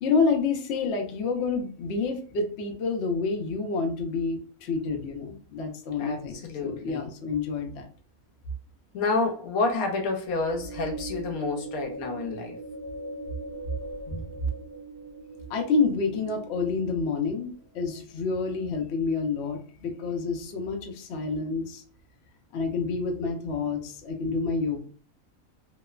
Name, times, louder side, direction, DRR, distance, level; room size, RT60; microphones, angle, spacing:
voice 1, 0.0-7.9 14.1-14.3 15.5-21.8 22.5-24.8, left 4 dB, 65° left, 0.7 m, -28 dB
voice 2, 6.0-7.0 8.9-12.6, left 3 dB, 80° left, 1.1 m, -29 dB
sound 1, 10.3-17.6, right 1 dB, 50° right, 0.9 m, -40 dB
2.8 x 2.0 x 2.3 m
omnidirectional pair, 1.5 m